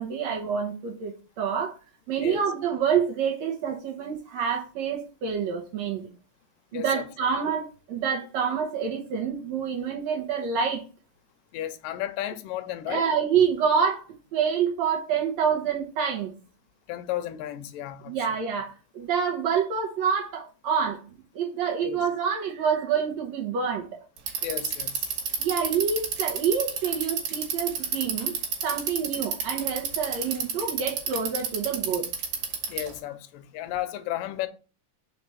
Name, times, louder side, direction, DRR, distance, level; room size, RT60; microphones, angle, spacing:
voice 1, 0.0-1.7 2.1-6.1 6.7-10.8 12.9-14.0 14.3-16.3 18.1-21.0 21.3-24.0 25.4-28.3 28.6-32.1, right 7 dB, 65° right, 2.0 m, -27 dB
voice 2, 6.7-7.1 11.5-13.1 16.9-18.2 21.8-22.0 24.4-25.1 32.7-34.5, left 12 dB, 85° left, 2.3 m, -33 dB
Bicycle, 24.2-33.0, right 6 dB, 85° right, 3.0 m, -30 dB
5.0 x 4.7 x 5.6 m
omnidirectional pair, 3.9 m